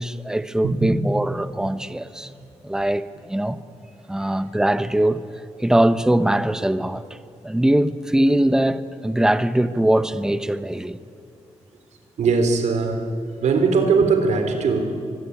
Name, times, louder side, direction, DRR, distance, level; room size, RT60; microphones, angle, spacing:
voice 1, 0.0-2.3 2.6-3.6 4.1-5.2 5.6-7.0 7.4-11.0, right 1 dB, 5° right, 0.9 m, -21 dB
voice 2, 0.6-1.0 12.2-13.1 13.4-14.9, right 4 dB, 80° right, 3.5 m, -20 dB
24.5 x 23.0 x 9.9 m
wide cardioid pair, 120°, 12 cm